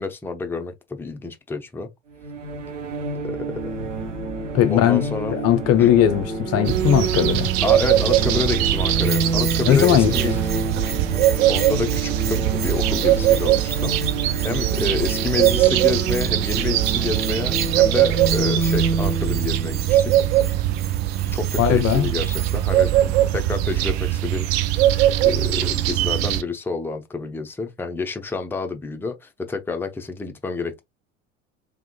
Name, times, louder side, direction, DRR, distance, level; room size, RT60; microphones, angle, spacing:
voice 1, 0.0-1.9 3.2-3.7 4.7-5.3 5.8-5.9 7.6-10.4 11.5-20.1 21.3-24.5 25.2-30.8, left 4 dB, 5° left, 0.7 m, -29 dB
sound 1, 2.2-20.8, right 3 dB, 75° right, 1.0 m, -28 dB
voice 2, 4.5-5.0 5.3-7.5 9.6-10.1 21.6-22.1, left 10 dB, 40° left, 0.7 m, -18 dB
sound 2, 6.6-26.4, right 13 dB, 55° right, 0.6 m, -21 dB
Bell, 9.0-22.7, right 5 dB, 25° right, 1.0 m, -37 dB
3.6 x 3.4 x 2.2 m
figure-of-eight pair, 70°, 38 cm